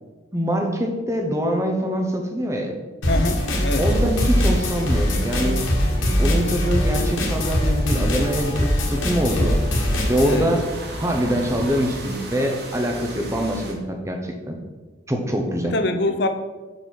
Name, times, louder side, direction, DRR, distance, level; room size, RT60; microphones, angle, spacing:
voice 1, 0.3-2.7 3.8-5.7 6.2-9.6 10.1-10.6 11.0-14.6 15.1-15.7, equal, 15° right, 3 dB, 0.9 m, -24 dB
sound 1, 3.0-10.4, equal, 80° left, 1.7 m, -21 dB
voice 2, 3.1-3.9 10.3-10.5 15.7-16.3, left 2 dB, 55° left, 7 dB, 0.7 m, -24 dB
sound 2, 3.7-13.7, right 1 dB, 55° right, 1.5 m, -36 dB
5.9 x 5.3 x 6.4 m, 1.3 s
head